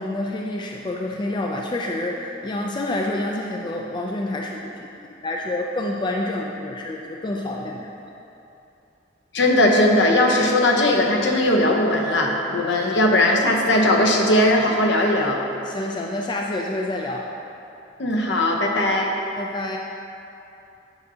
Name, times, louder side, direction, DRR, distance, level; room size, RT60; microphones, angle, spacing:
voice 1, 0.0-4.9 5.2-7.9 12.8-12.9 15.6-17.3 19.4-19.8, left 1 dB, 25° left, 0 dB, 0.3 m, -28 dB
voice 2, 9.3-15.4 18.0-19.1, left 1 dB, 70° left, 0 dB, 0.8 m, -19 dB
8.8 x 5.4 x 2.8 m, 2.8 s
head